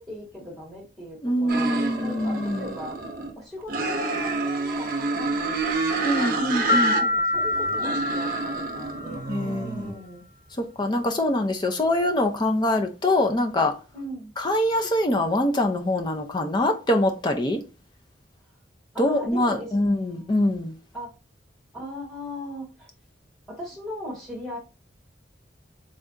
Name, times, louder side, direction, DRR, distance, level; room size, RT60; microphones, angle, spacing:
voice 1, 0.0-3.0 3.4-6.5 6.9-10.2 13.9-14.3 18.9-20.4 20.9-21.1 21.7-22.9 23.5-24.6, left 1 dB, ahead, 1.7 m, -39 dB
voice 2, 1.2-2.6 6.0-6.9 9.3-9.6 10.8-13.7 14.4-17.6 19.0-20.7, left 1 dB, 25° left, 0.5 m, -24 dB
sound 1, 1.5-3.3 3.7-7.0 7.3-9.9, right 3 dB, 45° right, 0.6 m, -28 dB
sound 2, 6.7-9.3, left 2 dB, 45° left, 0.9 m, -25 dB
3.7 x 3.3 x 2.5 m
head